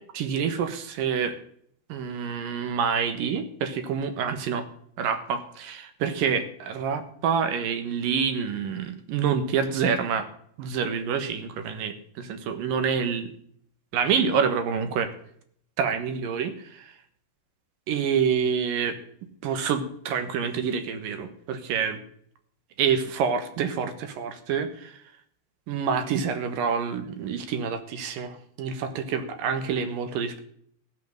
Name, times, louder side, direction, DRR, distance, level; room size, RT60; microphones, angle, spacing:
voice 1, 0.1-1.3 1.9-4.7 5.0-10.3 10.6-13.3 13.9-15.1 15.8-16.9 17.9-19.0 19.4-22.0 22.8-25.0 25.7-30.4, right 6 dB, 65° right, 8 dB, 2.6 m, -27 dB
16.5 x 5.6 x 7.9 m, 0.65 s
omnidirectional pair, 5.0 m